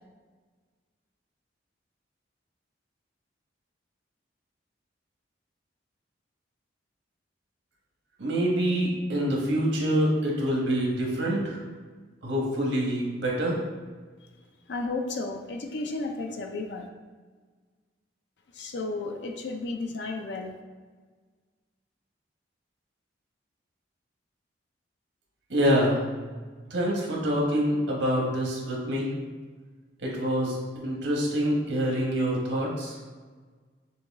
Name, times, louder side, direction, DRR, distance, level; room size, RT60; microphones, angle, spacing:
voice 1, 8.2-11.6 12.2-13.6 25.5-26.0 26.7-29.1 30.0-33.0, equal, 80° right, -2 dB, 1.3 m, -26 dB
voice 2, 14.7-16.9 18.5-20.6, left 3 dB, 65° left, 4 dB, 0.5 m, -33 dB
6.2 x 2.3 x 3.5 m, 1.5 s
head